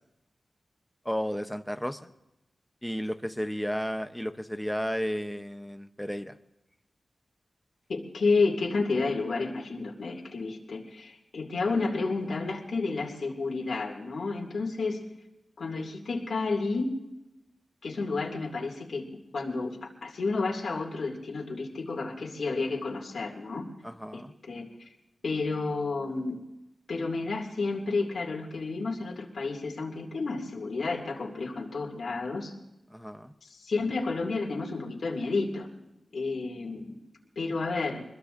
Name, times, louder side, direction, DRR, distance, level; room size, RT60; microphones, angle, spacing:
voice 1, 1.0-2.1 2.8-6.3 23.8-24.3 32.9-33.3, equal, 5° left, 9 dB, 0.7 m, -33 dB
voice 2, 7.9-15.0 15.6-16.9 17.8-19.0 19.3-23.6 24.1-24.2 24.5-24.7 25.2-26.4 26.9-32.5 33.5-35.7 36.1-36.9 37.4-38.0, left 3 dB, 75° left, 0 dB, 2.4 m, -31 dB
25.5 x 21.5 x 2.6 m, 0.94 s
wide cardioid pair, 120°, 0 cm